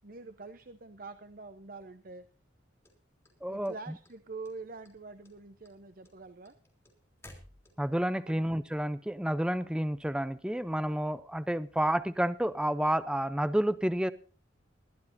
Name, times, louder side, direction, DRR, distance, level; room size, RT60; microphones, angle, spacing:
voice 1, 0.0-2.3 3.5-6.5 8.3-8.4, right 3 dB, 50° right, 10 dB, 0.8 m, -45 dB
sound 1, 2.8-4.1 4.4-5.0 5.2-8.1, left 1 dB, 15° left, 3.3 m, -55 dB
voice 2, 3.4-3.7 7.8-14.1, right 1 dB, 5° right, 14 dB, 0.5 m, -30 dB
21.5 x 13.0 x 2.7 m, 0.40 s
head